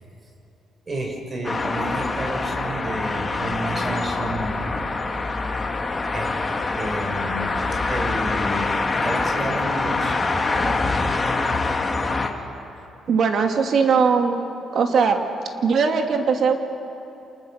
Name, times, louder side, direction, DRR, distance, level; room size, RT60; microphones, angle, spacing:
voice 1, 0.9-4.6 6.1-6.5 6.7-7.6 7.9-10.2 10.5-10.8, right 1 dB, 35° right, 2 dB, 6.3 m, -31 dB
sound 1, 1.4-12.3, left 3 dB, 25° left, 2.5 m, -25 dB
voice 2, 13.1-14.4 14.7-15.2 15.6-16.6, right 5 dB, 60° right, 4 dB, 2.7 m, -19 dB
29.5 x 27.5 x 6.7 m, 2.9 s
cardioid pair, 90°, 0 cm